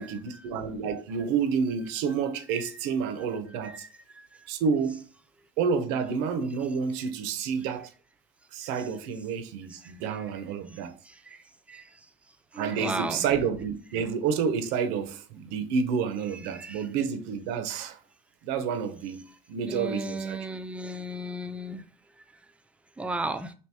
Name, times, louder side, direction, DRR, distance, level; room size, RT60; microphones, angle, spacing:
voice 1, 0.0-3.8 4.5-5.0 5.6-7.9 8.5-10.9 12.5-18.0 18.4-19.2 19.5-20.5, right 6 dB, 75° right, 0.5 m, -29 dB
voice 2, 12.5-13.3 16.5-16.8 19.7-21.8 23.0-23.5, right 1 dB, 5° right, 0.3 m, -34 dB
2.8 x 2.7 x 3.3 m
supercardioid pair, 90°, 18 cm